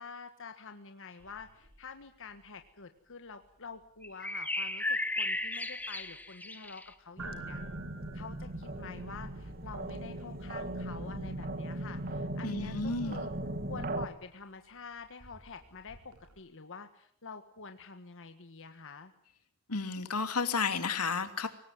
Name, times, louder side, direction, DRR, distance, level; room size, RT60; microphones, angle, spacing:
voice 1, 0.0-7.6 8.1-13.3 13.7-19.1, left 4 dB, 60° left, 7 dB, 1.6 m, -47 dB
sound 1, 1.2-16.3, right 3 dB, 75° right, 7.8 m, -55 dB
sound 2, 4.0-6.9, left 2 dB, 5° left, 1.5 m, -35 dB
sound 3, 7.2-14.1, right 1 dB, 45° right, 1.9 m, -38 dB
voice 2, 12.4-13.2 19.7-21.5, left 4 dB, 90° left, 9 dB, 2.6 m, -32 dB
23.5 x 19.0 x 9.5 m, 0.63 s
head